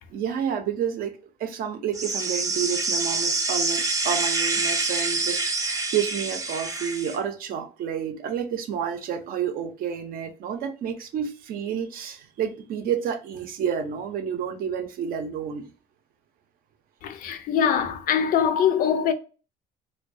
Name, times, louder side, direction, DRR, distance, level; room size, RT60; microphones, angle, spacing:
voice 1, 0.1-1.1 1.4-15.7, right 8 dB, 65° right, 0.6 m, -30 dB
sound 1, 1.9-7.2, right 3 dB, 20° right, 0.6 m, -26 dB
voice 2, 17.0-19.1, left 8 dB, 65° left, 0.4 m, -23 dB
2.2 x 2.2 x 2.5 m
cardioid pair, 100°, 16 cm